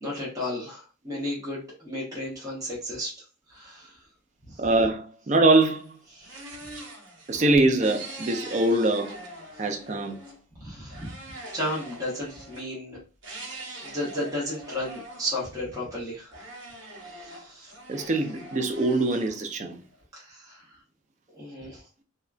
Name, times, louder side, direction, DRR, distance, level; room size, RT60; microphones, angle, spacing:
voice 1, 0.0-4.0 4.4-4.7 6.1-6.4 9.5-9.8 10.5-11.1 11.5-13.0 13.8-16.5 17.0-18.1 20.1-20.8 21.3-21.9, left 1 dB, 20° right, 0.8 m, -34 dB
voice 2, 4.6-6.0 7.3-9.1 9.6-10.2 17.9-19.8, right 2 dB, 35° right, 0.4 m, -23 dB
sound 1, 5.5-10.4 10.9-12.7 13.2-15.9 16.3-20.0, right 1 dB, 75° right, 0.9 m, -43 dB
2.8 x 2.2 x 2.4 m
head